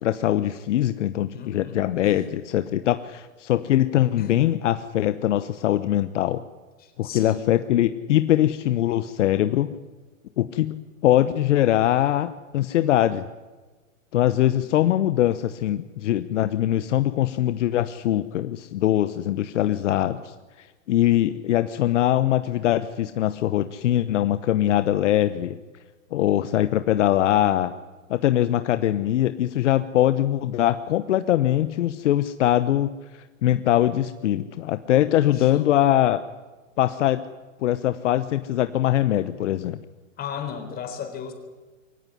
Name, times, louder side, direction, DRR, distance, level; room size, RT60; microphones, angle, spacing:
voice 1, 0.0-6.4 7.0-9.7 10.4-13.3 14.1-25.6 26.1-27.7 28.1-36.2 36.8-37.2 37.6-39.8, left 13 dB, 60° left, 12 dB, 1.1 m, -22 dB
voice 2, 1.3-2.3 4.2-4.4 6.8-7.5 35.2-35.7 40.2-41.3, left 7 dB, 20° left, 6 dB, 4.1 m, -37 dB
23.5 x 17.5 x 10.0 m, 1.3 s
hypercardioid pair, 140°, 41 cm